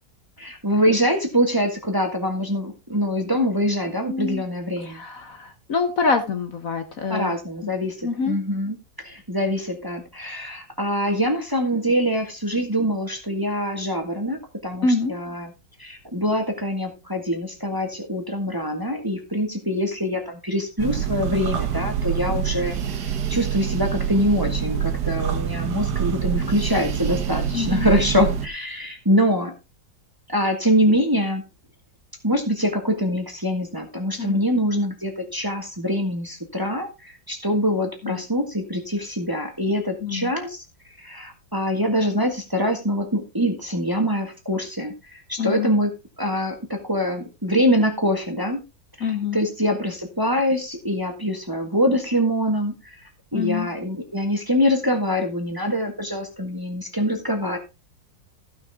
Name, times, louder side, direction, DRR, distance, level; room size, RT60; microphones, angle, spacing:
voice 1, 0.4-5.0 7.1-8.8 9.0-15.5 15.8-22.8 23.3-29.5 30.3-31.4 32.2-40.6 41.0-45.9 46.2-48.6 49.3-52.7 53.3-57.6, equal, 10° right, 4 dB, 1.6 m, -24 dB
voice 2, 4.0-4.4 4.8-7.4 8.0-8.4 14.8-15.2 27.5-27.9 34.2-34.4 38.0-38.2 40.0-40.3 45.4-45.7 49.0-49.4 53.3-53.7, left 4 dB, 55° left, 7 dB, 1.4 m, -25 dB
sound 1, 20.8-28.5, right 8 dB, 65° right, 1.6 m, -26 dB
15.0 x 6.2 x 3.6 m, 0.26 s
omnidirectional pair, 1.9 m